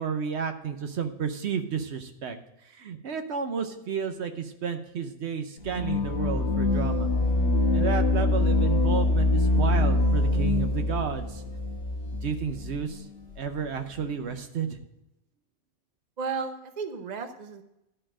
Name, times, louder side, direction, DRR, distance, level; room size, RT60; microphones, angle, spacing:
voice 1, 0.0-2.4 2.6-7.1 7.7-11.4 12.2-13.1 13.4-14.8, right 6 dB, 75° right, 7 dB, 1.1 m, -32 dB
sound 1, 5.6-12.8, left 2 dB, 65° left, 1.7 m, -24 dB
voice 2, 16.2-17.6, right 5 dB, 40° right, 7 dB, 0.9 m, -33 dB
11.5 x 4.5 x 7.3 m, 0.88 s
omnidirectional pair, 1.2 m